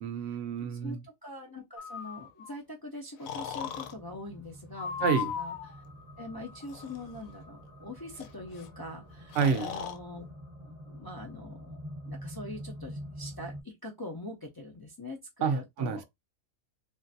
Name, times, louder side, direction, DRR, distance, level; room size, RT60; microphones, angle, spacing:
voice 1, 0.0-1.0 5.0-5.3 9.4-9.7 15.4-16.1, right 6 dB, 70° right, 0.8 m, -29 dB
voice 2, 0.7-4.9 5.4-5.5 6.2-10.2 10.6-16.0, left 1 dB, 35° left, 0.3 m, -43 dB
Breathing, 1.8-2.5 3.3-3.9 4.8-5.7 6.6-7.0 8.2-8.3 8.5-8.7 9.3-10.0, left 8 dB, 85° left, 1.0 m, -37 dB
sound 1, 3.6-13.6, equal, 25° right, 0.7 m, -46 dB
3.2 x 2.5 x 2.6 m
omnidirectional pair, 1.4 m